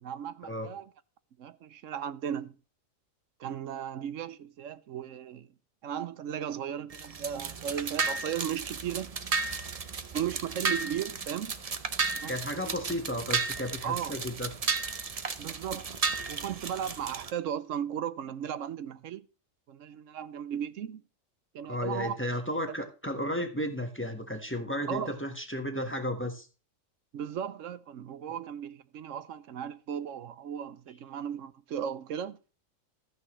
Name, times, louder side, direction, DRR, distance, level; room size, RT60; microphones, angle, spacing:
voice 1, 0.0-0.9 1.4-2.5 3.4-5.5 5.8-9.1 10.1-11.6 12.1-12.8 13.8-14.1 15.4-15.9 16.3-19.3 19.7-21.0 21.5-22.2 24.9-25.2 27.1-32.4, right 9 dB, 75° right, 1.0 m, -36 dB
sound 1, 6.9-17.3, right 4 dB, 35° right, 0.7 m, -34 dB
voice 2, 12.3-14.5 21.7-26.5, left 1 dB, 10° left, 1.4 m, -33 dB
14.0 x 9.4 x 3.1 m
omnidirectional pair, 1.4 m